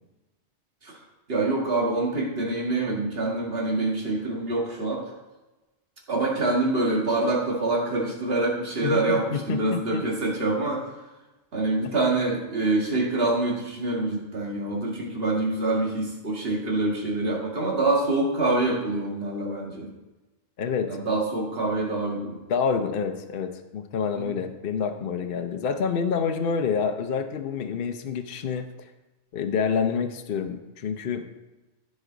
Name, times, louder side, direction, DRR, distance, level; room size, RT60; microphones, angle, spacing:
voice 1, 1.3-5.0 6.1-10.8 11.5-19.9 20.9-22.4 24.1-24.3, right 2 dB, 55° right, -3 dB, 2.2 m, -26 dB
voice 2, 8.8-10.0 20.6-21.0 22.5-28.7 29.3-31.2, left 6 dB, 55° left, 6 dB, 0.8 m, -28 dB
15.0 x 5.3 x 4.0 m, 1.1 s
omnidirectional pair, 1.2 m